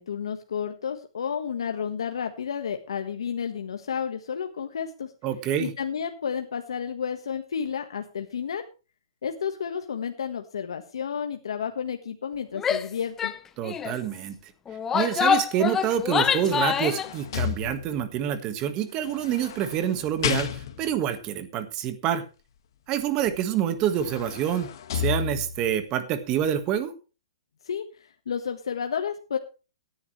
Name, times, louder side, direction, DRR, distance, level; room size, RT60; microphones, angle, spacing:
voice 1, 0.0-5.1 5.6-8.6 9.2-13.3 27.6-29.4, left 7 dB, 85° left, 6 dB, 1.5 m, -31 dB
voice 2, 5.2-5.7 13.6-14.5 14.9-22.2 22.9-24.7 24.9-26.9, right 10 dB, 25° right, 10 dB, 1.6 m, -27 dB
Female speech woman speaking / Yell, 12.6-12.9 13.2-13.4 13.6-14.0 14.7-17.1, left 7 dB, 10° left, 0.7 m, -25 dB
sound 1, 16.0-18.2 19.0-21.0 23.3-23.4 23.8-25.8 26.3-26.4, left 9 dB, 55° left, 1.8 m, -33 dB
17.5 x 10.5 x 3.3 m, 0.33 s
hypercardioid pair, 160°, 3 cm